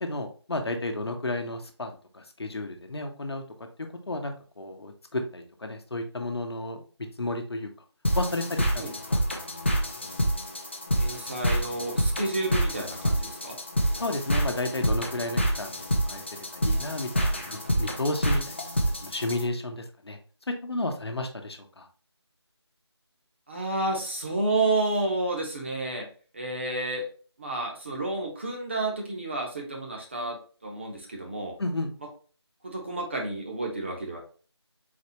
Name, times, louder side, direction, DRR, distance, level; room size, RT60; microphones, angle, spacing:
voice 1, 0.0-3.7 4.1-6.8 7.2-7.7 8.1-9.2 13.9-18.6 19.0-20.2 20.5-21.9 31.6-31.9, left 2 dB, 65° left, 5 dB, 0.9 m, -32 dB
sound 1, 8.0-19.4, equal, 25° left, 0.4 m, -27 dB
voice 2, 10.9-13.6 23.5-26.1 26.3-27.1 27.4-31.5 32.6-34.2, right 2 dB, 25° right, 0 dB, 0.7 m, -30 dB
4.1 x 3.2 x 3.0 m, 0.39 s
figure-of-eight pair, 165°, 15 cm